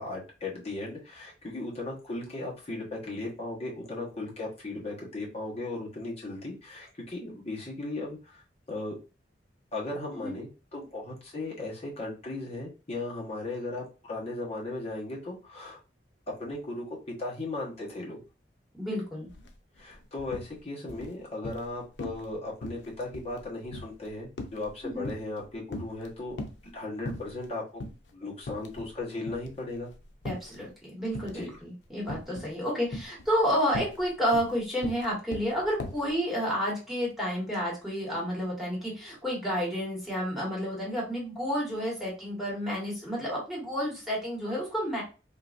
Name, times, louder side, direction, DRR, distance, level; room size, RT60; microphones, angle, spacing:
voice 1, 0.0-8.4 8.7-8.9 9.7-15.8 16.4-16.8 17.2-18.2 19.8-26.4 26.7-27.8 28.1-29.9 31.3-31.5, left 2 dB, 35° left, -4 dB, 1.2 m, -37 dB
voice 2, 18.8-19.3 24.9-25.1 30.2-45.0, equal, ahead, -6 dB, 1.5 m, -30 dB
sound 1, 19.3-19.5 19.8-20.5 20.9-21.7 22.0-22.3 22.6-25.4 25.7-26.7 27.1-27.5 27.8-28.0 28.4-29.0 29.3-30.6 31.1-31.6 32.1-32.5 32.9-36.1, left 2 dB, 90° left, 0.6 m, -39 dB
3.8 x 2.6 x 2.5 m, 0.33 s
head